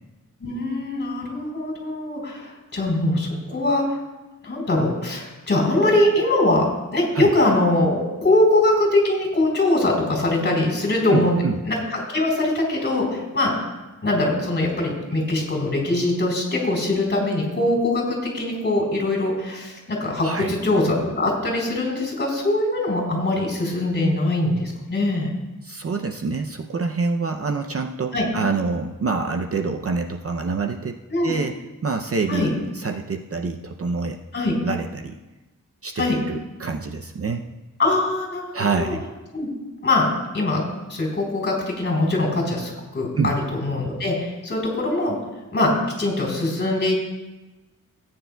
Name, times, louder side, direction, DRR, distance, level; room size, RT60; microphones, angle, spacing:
voice 1, 0.4-4.0 4.4-13.5 14.0-25.3 28.1-28.3 31.1-31.3 32.3-32.5 34.3-34.6 36.0-36.2 37.8-38.9 39.3-39.5 39.8-40.1 40.3-40.6 40.9-45.2 45.5-47.0, left 2 dB, 30° left, -1 dB, 3.8 m, -22 dB
voice 2, 11.1-11.5 20.2-20.5 25.6-31.5 31.8-32.5 32.7-34.2 34.6-35.1 35.8-37.5 38.5-39.0 43.2-43.4, right 4 dB, 45° right, 5 dB, 0.5 m, -26 dB
18.0 x 9.5 x 2.2 m, 1.1 s
wide cardioid pair, 155°, 34 cm